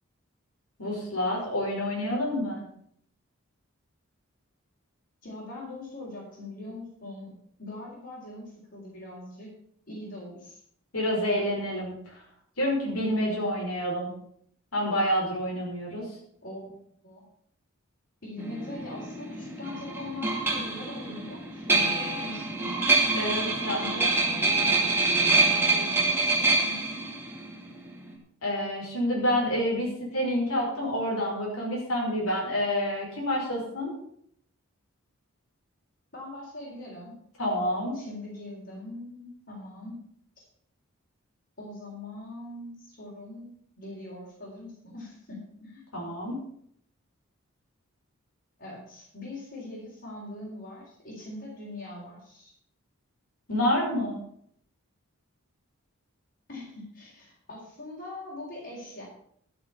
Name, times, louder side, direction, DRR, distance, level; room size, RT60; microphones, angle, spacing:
voice 1, 0.8-2.6 10.9-12.2 12.6-14.1 14.7-16.1 23.1-24.1 28.4-33.9 37.4-38.0 45.9-46.4 53.5-54.2, equal, 85° left, -3 dB, 5.3 m, -28 dB
voice 2, 5.2-9.5 9.9-10.6 16.4-16.7 17.0-17.2 18.2-22.9 23.4-26.8 36.1-37.2 37.9-40.0 40.4-40.5 41.6-45.8 48.6-52.5 56.5-59.1, left 2 dB, 50° left, -7 dB, 4.2 m, -42 dB
sound 1, 18.4-28.1, right 3 dB, 10° right, 2.3 m, -26 dB
12.5 x 7.0 x 7.0 m, 0.67 s
head